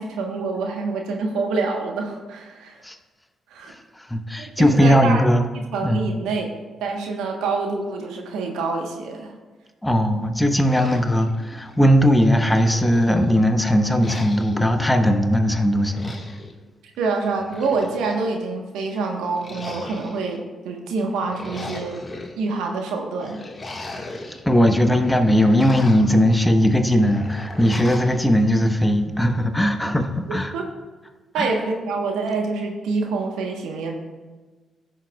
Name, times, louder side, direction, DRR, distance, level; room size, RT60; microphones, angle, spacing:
voice 1, 0.0-2.8 3.5-3.7 4.4-5.2 5.5-6.5 6.8-9.3 17.0-22.0 22.4-23.4 30.5-30.7 31.3-34.0, right 4 dB, 75° right, 2 dB, 1.1 m, -26 dB
voice 2, 4.0-5.5 5.8-6.0 9.8-16.2 24.4-30.6 31.4-31.6, equal, 10° left, 6 dB, 1.1 m, -19 dB
sound 1, 10.6-11.8 12.2-13.4 14.0-14.7 15.8-16.5 17.3-18.3 19.3-20.4 21.1-22.3 23.2-24.4 24.8-26.2 27.0-28.2, left 2 dB, 35° left, 1.6 m, -38 dB
15.5 x 6.5 x 2.3 m, 1.3 s
hypercardioid pair, 45°, 0 cm